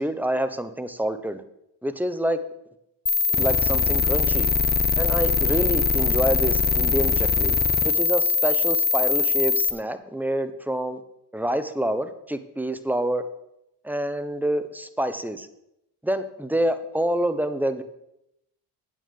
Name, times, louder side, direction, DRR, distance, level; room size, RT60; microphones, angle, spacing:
voice 1, 0.0-1.4 1.8-2.4 3.3-4.5 5.0-7.6 7.8-11.0 11.3-13.2 13.8-15.5 16.0-17.8, right 1 dB, 5° right, 10 dB, 0.9 m, -27 dB
sound 1, 3.1-9.7, left 5 dB, 20° left, 0.8 m, -22 dB
8.6 x 6.6 x 6.9 m, 0.83 s
supercardioid pair, 70°, 43 cm